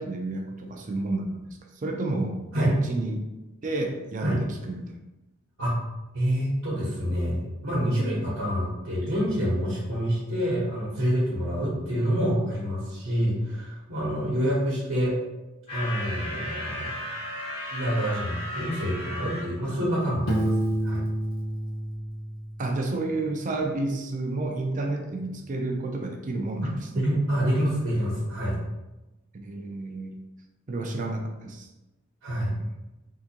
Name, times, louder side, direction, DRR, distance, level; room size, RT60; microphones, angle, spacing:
voice 1, 0.0-1.4 1.8-3.2 3.6-4.9 22.6-27.0 29.4-30.1 30.7-31.7 32.4-32.7, right 2 dB, 40° right, 3 dB, 0.5 m, -30 dB
voice 2, 4.2-4.5 5.6-5.8 6.1-15.2 15.7-17.0 17.7-20.5 20.8-21.0 26.9-28.6 32.2-32.6, equal, 75° right, -8 dB, 1.1 m, -27 dB
sound 1, 15.7-19.5, left 1 dB, 30° left, 0.9 m, -35 dB
Piano, 20.3-23.0, right 1 dB, 90° left, 0.7 m, -29 dB
3.6 x 2.7 x 2.8 m, 1.0 s
head